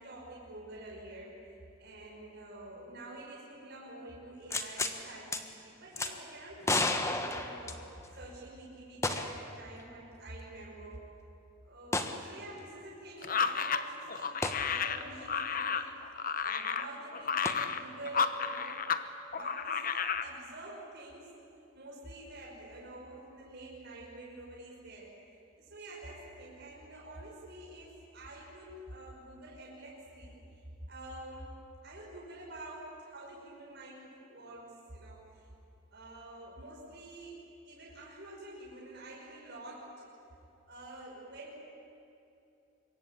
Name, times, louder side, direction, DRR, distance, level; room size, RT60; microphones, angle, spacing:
voice 1, 0.0-1.4 1.8-11.1 11.6-16.0 16.4-18.8 19.3-21.3 21.7-25.2 25.6-30.3 30.9-31.6 31.8-35.5 35.9-37.4 37.6-40.1 40.7-41.5, right 1 dB, 55° right, -4 dB, 5.6 m, -48 dB
sound 1, 4.5-5.0 5.3-5.4 6.0-6.1 6.6-8.2 9.0-9.5 9.8-9.9 11.9-12.2 14.4-14.6 17.4-17.5, left 2 dB, 15° left, 1.3 m, -32 dB
sound 2, 13.2-19.0 19.3-20.3, left 6 dB, 40° left, 1.0 m, -32 dB
26.0 x 23.0 x 8.6 m, 2.8 s
head